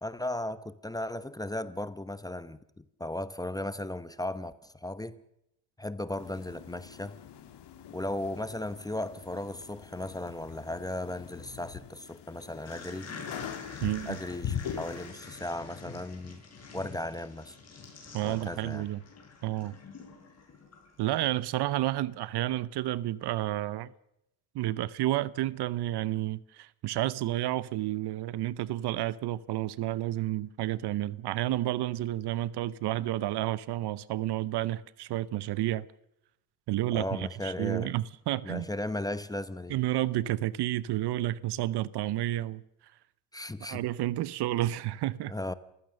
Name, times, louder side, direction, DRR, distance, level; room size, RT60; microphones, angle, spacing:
voice 1, 0.0-5.2 5.8-7.2 7.9-13.1 14.1-16.4 16.7-17.6 18.2-18.9 36.9-37.9 38.4-39.8 43.3-43.8 45.3-45.5, left 1 dB, 10° left, 0.8 m, -36 dB
sound 1, 6.2-15.1, left 9 dB, 55° left, 2.3 m, -42 dB
sound 2, 12.6-21.2, left 4 dB, 30° left, 6.6 m, -46 dB
voice 2, 13.8-14.2 18.1-19.0 19.4-19.7 21.0-23.9 24.5-35.9 36.7-38.7 39.7-42.6 43.6-45.3, right 15 dB, 55° right, 0.8 m, -30 dB
28.0 x 16.0 x 6.6 m
supercardioid pair, 105°, 49 cm